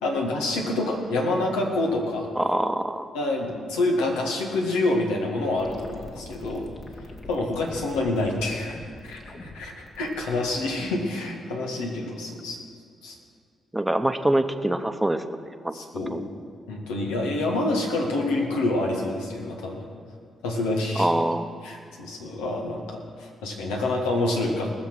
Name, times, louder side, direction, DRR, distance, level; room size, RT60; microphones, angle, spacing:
voice 1, 0.0-2.3 3.1-6.7 7.3-12.6 13.0-13.2 15.7-16.3 16.7-19.9 20.4-21.1 21.6-24.7, left 2 dB, 80° left, 0 dB, 1.9 m, -27 dB
voice 2, 2.3-3.0 13.7-15.8 16.1-16.2 21.0-21.4, right 1 dB, 10° right, 9 dB, 1.1 m, -24 dB
sound 1, 5.6-11.2, left 2 dB, 45° left, 2.3 m, -43 dB
19.5 x 7.1 x 6.2 m, 2.3 s
hypercardioid pair, 40°, 0 cm